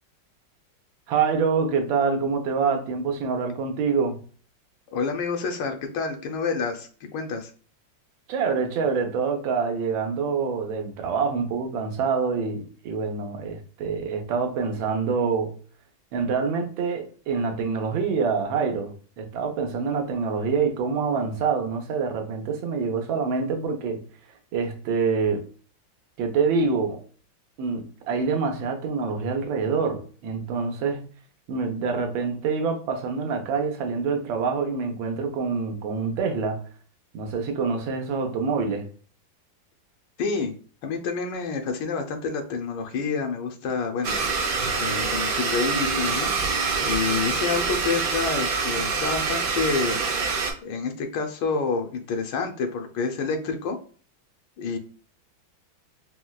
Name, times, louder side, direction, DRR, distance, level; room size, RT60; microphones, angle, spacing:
voice 1, 1.1-4.2 8.3-15.5 16.1-24.0 24.5-25.4 26.2-27.0 27.6-31.0 31.5-36.6 37.1-38.8, right 5 dB, 85° right, 1.4 m, -26 dB
voice 2, 4.9-7.5 40.2-40.5 40.8-44.2 44.8-46.3 46.8-50.0 50.6-53.8 54.6-54.8, left 5 dB, 75° left, 1.2 m, -28 dB
Domestic sounds home sounds, 44.0-50.5, right 4 dB, 70° right, 0.9 m, -25 dB
4.4 x 2.1 x 2.2 m
omnidirectional pair, 2.1 m